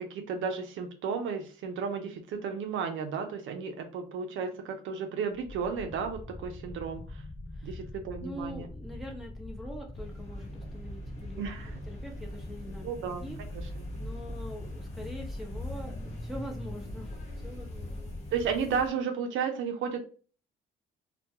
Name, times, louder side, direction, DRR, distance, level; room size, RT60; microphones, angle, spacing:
voice 1, 0.0-7.2 7.6-8.7 11.4-11.8 12.8-13.2 13.5-13.6 18.3-20.0, right 6 dB, 75° right, 5 dB, 0.5 m, -33 dB
sound 1, 5.3-18.5, left 2 dB, 20° left, 0.4 m, -44 dB
voice 2, 7.5-7.8 8.2-11.5 11.9-18.1, equal, ahead, -1 dB, 0.9 m, -44 dB
sound 2, 9.9-18.9, left 1 dB, 35° left, 1.0 m, -41 dB
2.2 x 2.2 x 2.8 m, 0.38 s
cardioid pair, 90°, 20 cm